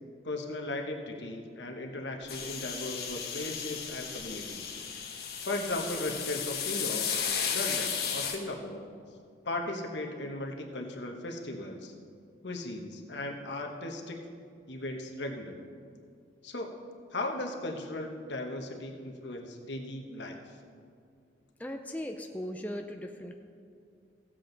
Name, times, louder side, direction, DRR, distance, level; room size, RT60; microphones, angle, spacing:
voice 1, 0.2-5.0 5.4-7.1 7.5-8.8 9.4-11.9 12.4-14.2 14.7-15.6 16.4-16.7 17.1-20.4, left 2 dB, 85° left, 3 dB, 1.1 m, -37 dB
sound 1, 2.3-8.4, left 7 dB, 60° left, 1.3 m, -34 dB
voice 2, 21.6-23.4, equal, 10° left, 3 dB, 0.5 m, -38 dB
16.0 x 7.6 x 4.0 m, 2.3 s
head